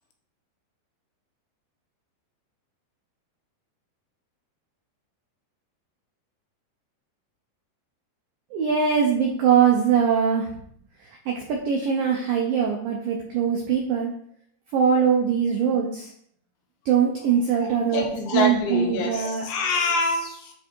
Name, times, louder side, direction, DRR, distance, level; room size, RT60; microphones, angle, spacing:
voice 1, 8.5-10.5 11.3-14.1 14.7-16.1 16.9-19.5, right 7 dB, 80° right, 0 dB, 2.0 m, -22 dB
voice 2, 17.6-20.5, left 3 dB, 80° left, 3 dB, 3.4 m, -26 dB
10.5 x 3.5 x 4.5 m, 0.67 s
omnidirectional pair, 5.3 m